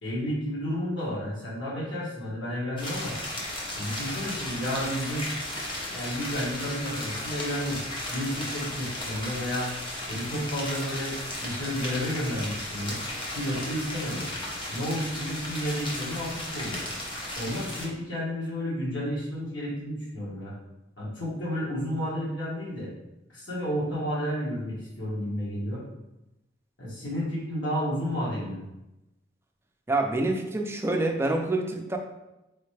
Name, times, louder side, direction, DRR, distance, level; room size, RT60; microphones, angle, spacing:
voice 1, 0.0-3.2 3.7-5.3 5.9-7.8 8.1-9.7 10.0-13.0 13.3-14.2 14.7-16.8 17.3-20.5 21.0-22.9 23.3-25.8 26.8-28.6, equal, 85° left, -7 dB, 1.4 m, -31 dB
sound 1, 2.8-17.9, left 1 dB, 25° left, 0.9 m, -35 dB
voice 2, 29.9-32.0, right 2 dB, 15° right, 2 dB, 0.4 m, -26 dB
4.1 x 3.2 x 3.2 m, 0.95 s
head